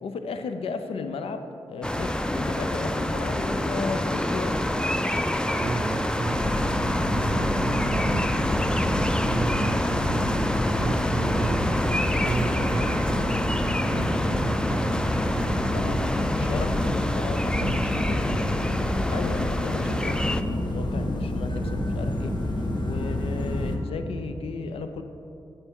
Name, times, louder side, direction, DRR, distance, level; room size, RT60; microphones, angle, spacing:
voice 1, 0.0-4.6 15.7-18.7 19.1-22.4 22.8-25.0, left 4 dB, 80° left, 8 dB, 0.5 m, -34 dB
sound 1, 1.8-20.4, left 1 dB, 10° left, 0.5 m, -27 dB
voice 2, 5.6-16.3 17.6-18.5, right 4 dB, 60° right, 3 dB, 0.4 m, -34 dB
sound 2, 6.3-23.8, left 1 dB, 50° left, 1.1 m, -28 dB
8.1 x 8.0 x 3.7 m, 2.8 s
supercardioid pair, 40°, 10 cm